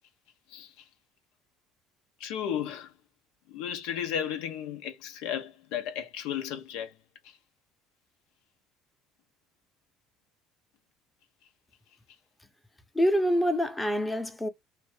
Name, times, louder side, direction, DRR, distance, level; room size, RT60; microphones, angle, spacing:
voice 1, 2.2-2.9 3.5-6.9, left 9 dB, 75° left, 0.6 m, -34 dB
voice 2, 12.9-14.5, equal, 10° left, 0.7 m, -26 dB
2.5 x 2.1 x 3.3 m
supercardioid pair, 80°, 0 cm